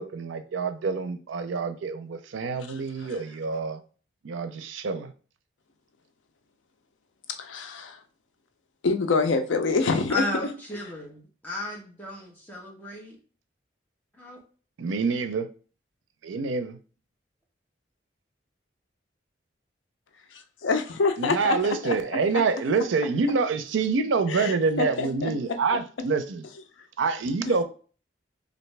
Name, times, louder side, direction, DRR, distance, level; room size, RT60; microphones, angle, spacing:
voice 1, 0.0-3.8 4.2-5.1 14.8-15.5 16.2-16.8 21.2-26.4 27.0-27.6, right 4 dB, 85° right, 0.5 m, -27 dB
voice 2, 7.4-8.0 8.8-10.5 20.3-22.0 24.3-25.3 27.5-27.6, left 4 dB, 85° left, 0.5 m, -26 dB
voice 3, 10.1-13.2 14.2-14.4, left 2 dB, 10° left, 0.9 m, -34 dB
3.3 x 2.5 x 3.2 m
head